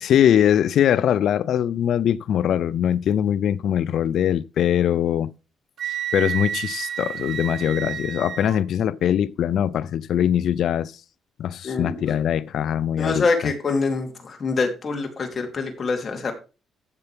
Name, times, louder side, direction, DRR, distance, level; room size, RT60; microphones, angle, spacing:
voice 1, 0.0-5.3 6.1-10.9 11.4-13.3, left 10 dB, 65° left, 0.5 m, -22 dB
Wind instrument woodwind instrument, 5.8-8.6, right 9 dB, 55° right, 1.0 m, -30 dB
voice 2, 11.6-12.2 13.0-16.3, left 4 dB, 35° left, 2.9 m, -25 dB
15.0 x 6.7 x 3.4 m
cardioid pair, 130°, 0 cm